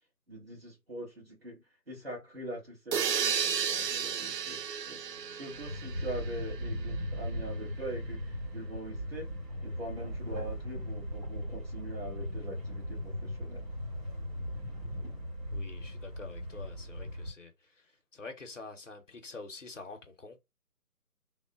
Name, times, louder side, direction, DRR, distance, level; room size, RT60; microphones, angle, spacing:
voice 1, 0.3-5.0 5.3-9.3 9.6-13.7, right 1 dB, 40° right, 1.6 m, -43 dB
sound 1, 2.9-6.7, right 7 dB, 80° right, 0.6 m, -33 dB
sound 2, 5.2-17.3, equal, 55° right, 1.7 m, -38 dB
sound 3, 9.5-15.2, equal, ahead, 0.6 m, -52 dB
voice 2, 15.5-20.4, left 3 dB, 50° left, 0.6 m, -47 dB
3.0 x 2.0 x 2.3 m
figure-of-eight pair, 175°, 48 cm